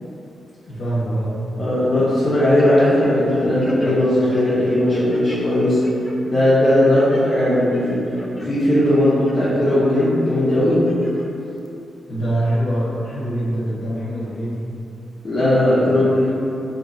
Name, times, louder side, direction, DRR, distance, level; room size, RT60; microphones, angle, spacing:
voice 1, 0.7-1.4 12.1-14.7 15.7-16.0, right 1 dB, 75° left, -10 dB, 0.8 m, -24 dB
voice 2, 1.6-5.8 6.3-8.1 8.3-10.9 15.2-16.3, left 1 dB, 35° left, -11 dB, 0.8 m, -17 dB
sound 1, 2.6-3.3 3.6-5.4 5.8-6.2 6.6-7.2 7.6-8.5 8.9-9.5 10.0-10.1 10.7-11.3 11.7-11.8, left 1 dB, 20° left, 0.4 m, -34 dB
3.6 x 2.7 x 2.6 m, 2.8 s
cardioid pair, 75°, 0 cm